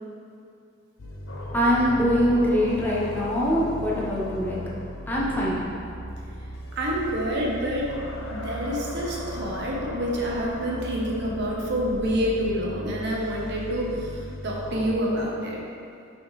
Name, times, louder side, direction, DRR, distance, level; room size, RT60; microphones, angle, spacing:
sound 1, 1.0-14.9, left 1 dB, 70° left, 0.7 m, -37 dB
voice 1, 1.5-4.6 5.1-5.6, equal, 10° left, -6 dB, 0.8 m, -23 dB
voice 2, 6.7-7.9 8.3-13.9 14.4-15.6, equal, 60° right, -2 dB, 0.9 m, -27 dB
5.8 x 5.3 x 3.1 m, 2.4 s
head